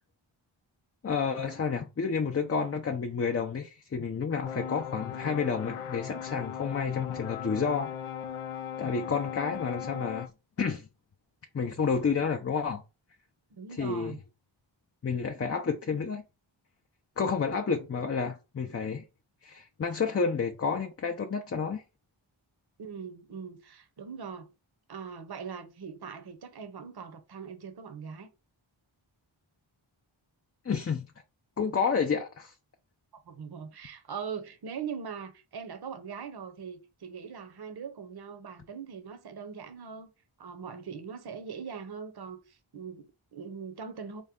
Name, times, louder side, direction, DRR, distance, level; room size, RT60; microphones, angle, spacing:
voice 1, 1.0-7.9 8.8-10.3 10.6-10.9 11.5-12.8 13.8-14.2 15.0-16.2 17.2-19.0 19.4-21.8 30.6-31.1 31.6-32.5, left 5 dB, 30° left, 0.5 m, -30 dB
sound 1, 4.4-10.3, left 8 dB, 90° left, 0.6 m, -38 dB
voice 2, 13.5-14.2 22.8-24.5 24.9-28.3 33.3-40.1 40.4-44.2, right 6 dB, 50° right, 0.7 m, -41 dB
4.5 x 2.1 x 3.6 m
wide cardioid pair, 60°, 49 cm